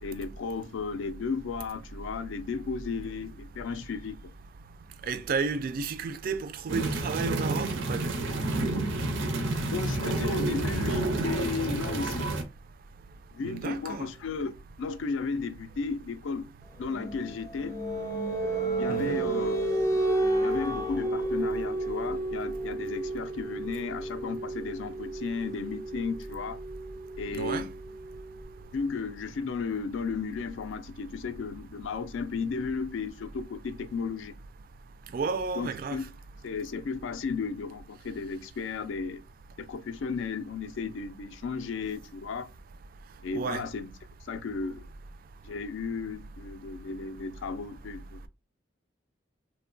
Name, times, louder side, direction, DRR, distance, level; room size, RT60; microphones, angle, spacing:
voice 1, 0.0-4.3 9.7-12.3 13.3-16.5 16.8-17.8 18.8-19.6 20.4-26.6 27.2-27.7 28.7-34.3 35.6-36.1 36.4-39.2 39.6-42.5 43.2-43.9 44.3-44.9 45.4-48.3, left 5 dB, 85° left, 0.4 m, -34 dB
voice 2, 5.1-8.3 13.4-14.1 18.9-19.2 27.3-27.7 35.1-36.0 43.3-43.6, right 5 dB, 50° right, 0.3 m, -32 dB
sound 1, 6.7-12.4, right 2 dB, 90° right, 0.6 m, -29 dB
sound 2, 16.8-28.3, right 2 dB, 20° left, 0.5 m, -31 dB
3.0 x 2.1 x 2.5 m
head